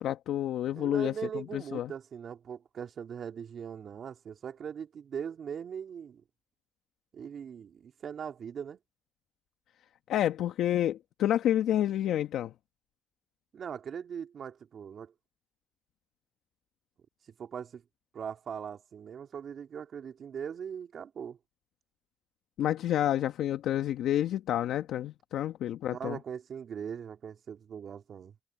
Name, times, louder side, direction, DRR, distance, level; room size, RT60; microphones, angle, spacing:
voice 1, 0.0-1.9 10.1-12.5 22.6-26.2, left 11 dB, 80° left, 1.2 m, -29 dB
voice 2, 0.7-6.2 7.1-8.8 13.5-15.1 17.4-17.8 18.1-21.4 25.8-28.3, right 7 dB, 65° right, 3.0 m, -40 dB
supercardioid pair, 50°, 0 cm